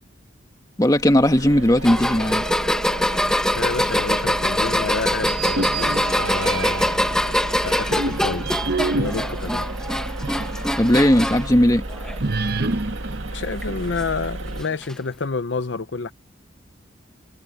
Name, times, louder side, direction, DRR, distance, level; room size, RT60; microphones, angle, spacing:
voice 1, 0.8-2.5 10.8-11.8, left 1 dB, 20° left, 1.6 m, -17 dB
sound 1, 0.9-14.6, right 2 dB, 85° right, 2.0 m, -33 dB
sound 2, 1.8-11.5 11.9-12.5 13.6-13.7 14.8-14.9, left 1 dB, 5° left, 1.1 m, -24 dB
voice 2, 3.4-8.5 8.9-9.7 13.3-16.1, left 4 dB, 65° left, 0.7 m, -29 dB
sound 3, 5.2-7.1 7.6-10.6 11.0-11.1 12.2-14.3, right 3 dB, 55° right, 1.0 m, -28 dB
head